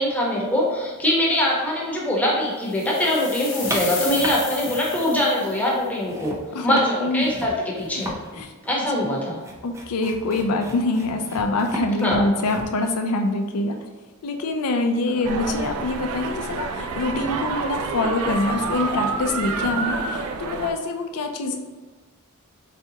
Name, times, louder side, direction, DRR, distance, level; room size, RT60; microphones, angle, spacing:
voice 1, 0.0-6.3 6.6-8.1 8.7-9.4 12.0-12.2, left 1 dB, 5° left, -4 dB, 0.9 m, -23 dB
sound 1, 2.7-5.7, left 4 dB, 35° left, 1.0 m, -33 dB
sound 2, 3.6-5.4 5.7-12.9, equal, 15° right, 0.5 m, -35 dB
voice 2, 6.5-7.3 8.3-8.5 9.6-13.8 14.2-21.6, left 2 dB, 85° left, 4 dB, 0.5 m, -25 dB
sound 3, 15.2-20.7, right 3 dB, 70° right, 0.4 m, -28 dB
4.1 x 3.5 x 2.8 m, 1.3 s
head